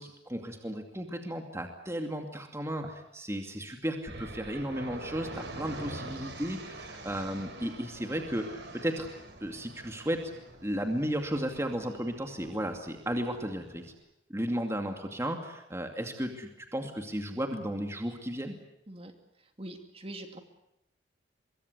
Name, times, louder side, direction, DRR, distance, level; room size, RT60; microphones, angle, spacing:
voice 1, 0.0-9.1 9.4-10.3 10.6-13.9 14.3-18.6, equal, 15° right, 4 dB, 2.5 m, -34 dB
sound 1, 4.1-13.9, right 2 dB, 65° right, 5.3 m, -45 dB
voice 2, 19.6-20.4, right 1 dB, 30° right, 6 dB, 2.7 m, -43 dB
25.0 x 23.0 x 8.1 m, 0.82 s
head